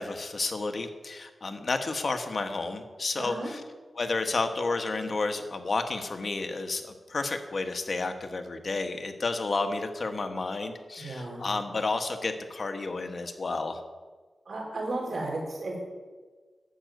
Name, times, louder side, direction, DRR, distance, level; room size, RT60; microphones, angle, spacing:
voice 1, 0.0-3.6 3.9-13.8, left 3 dB, 50° left, 7 dB, 1.2 m, -31 dB
voice 2, 3.2-3.5 11.0-11.4 14.5-15.8, right 2 dB, 70° right, -1 dB, 4.2 m, -34 dB
10.0 x 7.7 x 9.2 m, 1.4 s
wide cardioid pair, 85°, 0 cm